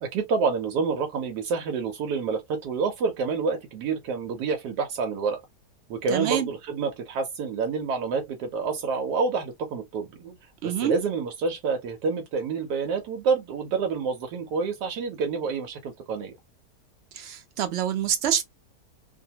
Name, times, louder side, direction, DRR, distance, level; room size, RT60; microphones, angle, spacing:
voice 1, 0.0-5.4 5.9-10.4 10.6-16.3, right 5 dB, 85° right, 1.2 m, -28 dB
voice 2, 6.1-6.5 10.6-10.9 17.1-18.4, right 9 dB, 70° right, 0.6 m, -26 dB
2.8 x 2.2 x 2.7 m
omnidirectional pair, 1.7 m